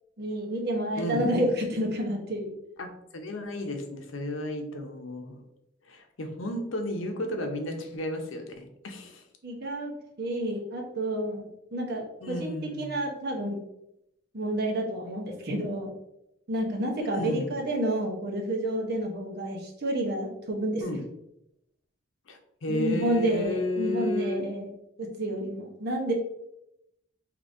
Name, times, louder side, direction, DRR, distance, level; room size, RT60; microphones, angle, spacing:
voice 1, 0.2-2.5 9.4-13.6 14.3-15.9 16.5-20.8 22.7-26.1, right 1 dB, 55° right, 0 dB, 0.9 m, -30 dB
voice 2, 1.0-1.3 2.8-5.4 5.9-9.2 12.2-13.0 17.1-17.5 20.8-21.0 22.3-24.4, left 1 dB, 90° left, 4 dB, 0.7 m, -33 dB
5.0 x 2.8 x 2.6 m, 0.83 s
head